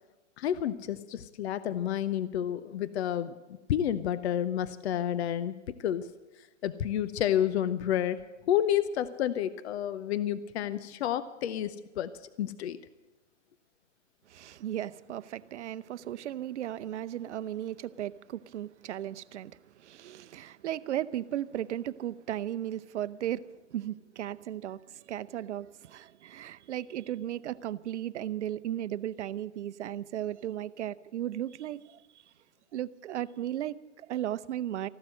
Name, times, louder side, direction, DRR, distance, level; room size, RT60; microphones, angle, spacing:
voice 1, 0.4-3.3 3.7-6.1 6.6-8.2 8.5-12.1 12.4-12.8, left 10 dB, 60° left, 0.8 m, -30 dB
voice 2, 14.3-23.4 23.7-32.0 32.7-34.9, right 12 dB, 70° right, 0.7 m, -36 dB
15.0 x 12.0 x 7.6 m
hypercardioid pair, 140°, 37 cm